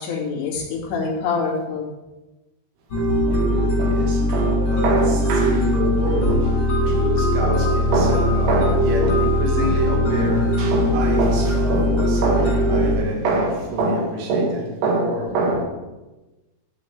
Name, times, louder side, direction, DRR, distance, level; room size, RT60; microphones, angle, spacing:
voice 1, 0.0-1.9, left 4 dB, 70° left, 4.6 m, -25 dB
sound 1, 2.9-13.0, left 1 dB, 35° left, 4.5 m, -20 dB
voice 2, 3.1-15.7, right 2 dB, 85° right, 4.6 m, -24 dB
12.5 x 6.4 x 7.7 m
omnidirectional pair, 5.4 m